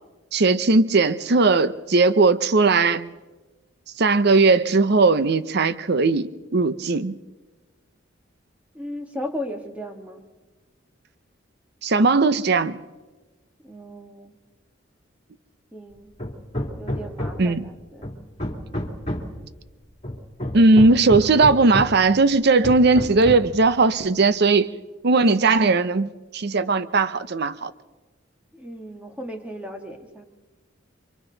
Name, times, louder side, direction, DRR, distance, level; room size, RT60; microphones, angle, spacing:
voice 1, 0.3-3.1 4.0-7.2 11.8-12.8 17.4-17.7 20.5-24.7 25.0-27.7, right 3 dB, 60° right, 0.7 m, -18 dB
voice 2, 8.7-10.2 13.6-14.4 15.7-16.1 16.8-18.2 28.5-30.2, left 1 dB, 5° right, 1.7 m, -36 dB
Hammer, 16.2-17.6 18.0-19.4 20.0-22.1 22.6-23.6, left 1 dB, 35° left, 2.8 m, -30 dB
29.0 x 24.5 x 4.0 m
head